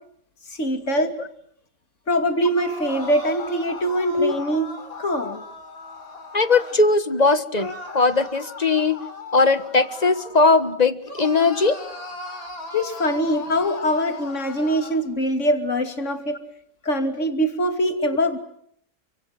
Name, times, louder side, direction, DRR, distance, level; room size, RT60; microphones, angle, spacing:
voice 1, 0.5-1.2 2.1-4.7 5.0-5.4 12.7-16.4 16.8-18.4, equal, 55° left, 7 dB, 3.1 m, -23 dB
sound 1, 2.5-6.8 7.5-10.7 11.1-15.0, left 3 dB, 70° left, 4.2 m, -38 dB
voice 2, 6.3-9.0 9.3-11.8, left 3 dB, 30° left, 12 dB, 1.5 m, -19 dB
30.0 x 26.0 x 7.6 m, 0.69 s
omnidirectional pair, 1.5 m